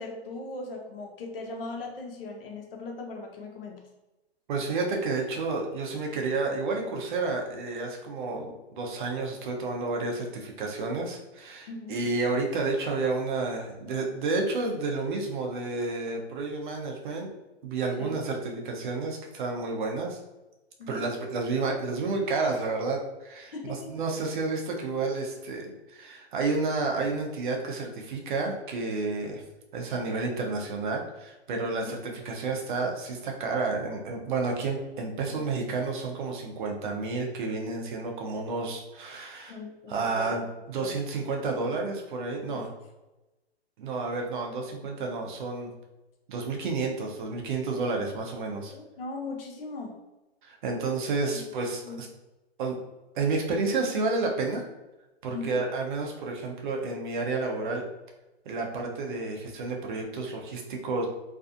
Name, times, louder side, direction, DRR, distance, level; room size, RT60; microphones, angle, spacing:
voice 1, 0.0-3.8 8.3-8.5 11.7-12.0 18.0-18.1 20.8-21.1 23.5-23.9 31.6-31.9 35.3-35.4 39.5-40.4 40.8-41.0 42.5-42.6 48.7-49.9 51.3-51.4 51.8-52.0 55.3-55.6, left 3 dB, 60° left, 1 dB, 0.7 m, -39 dB
voice 2, 4.5-17.3 17.6-20.2 20.9-29.4 29.7-39.5 39.9-42.7 43.8-45.7 46.3-48.7 50.4-52.1 52.6-52.8 53.2-54.7 55.2-57.9 58.5-61.1, right 3 dB, 50° right, 1 dB, 0.5 m, -30 dB
2.5 x 2.3 x 2.5 m, 1.0 s
hypercardioid pair, 140°, 33 cm